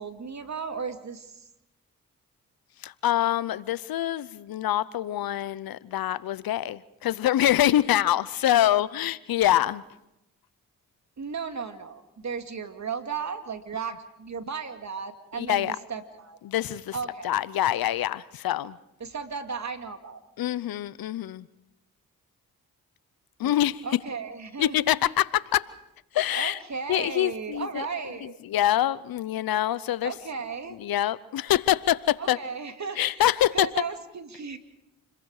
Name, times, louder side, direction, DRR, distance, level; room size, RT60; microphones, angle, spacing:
voice 1, 0.0-1.5 11.2-16.4 16.9-17.3 19.0-20.2 23.4-23.5 23.8-24.9 26.3-28.4 30.0-30.8 32.2-33.3 33.5-34.6, right 5 dB, 50° right, 2.4 m, -35 dB
voice 2, 2.8-9.8 15.4-15.8 16.4-17.0 17.2-18.8 20.4-21.5 23.4-23.8 24.6-25.7 26.1-26.6 26.9-27.9 28.4-30.1 30.8-32.4 33.0-33.7, left 12 dB, 75° left, 0.8 m, -25 dB
29.0 x 22.0 x 4.9 m
supercardioid pair, 45°, 36 cm